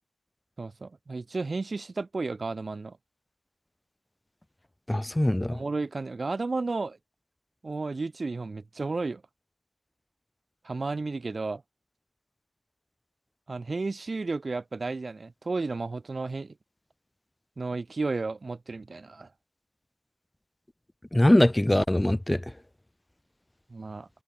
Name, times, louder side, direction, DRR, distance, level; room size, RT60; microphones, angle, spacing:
voice 1, 0.6-3.0 5.5-7.0 7.6-9.2 10.6-11.6 13.5-16.5 17.6-19.3 23.7-24.1, right 3 dB, 25° right, 1.2 m, -33 dB
voice 2, 4.9-5.6 21.1-22.4, left 1 dB, 10° left, 0.6 m, -22 dB
wide cardioid pair, 140°, 0 cm